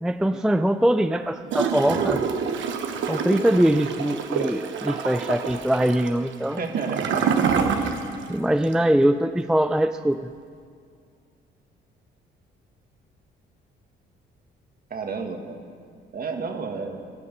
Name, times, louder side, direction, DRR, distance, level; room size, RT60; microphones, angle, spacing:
voice 1, 0.0-2.2 3.1-6.6 8.3-10.3, right 1 dB, 5° right, 10 dB, 0.3 m, -22 dB
Gurgling / Toilet flush, 1.5-8.3 8.6-8.7, right 6 dB, 70° right, 1.1 m, -26 dB
voice 2, 6.6-7.4 14.9-15.6 16.1-17.0, right 4 dB, 50° right, 4 dB, 1.7 m, -31 dB
20.5 x 6.9 x 5.4 m, 2.2 s
cardioid pair, 90°, 20 cm